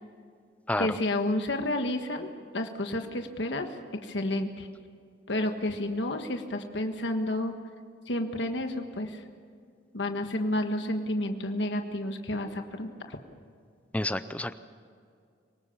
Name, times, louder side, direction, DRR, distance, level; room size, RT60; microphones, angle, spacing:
voice 1, 0.8-4.7 5.3-7.5 8.0-9.2 9.9-13.2, left 1 dB, 75° left, 5 dB, 1.5 m, -31 dB
voice 2, 13.9-14.6, left 1 dB, 10° left, 12 dB, 0.6 m, -29 dB
25.5 x 18.5 x 7.2 m, 2.2 s
head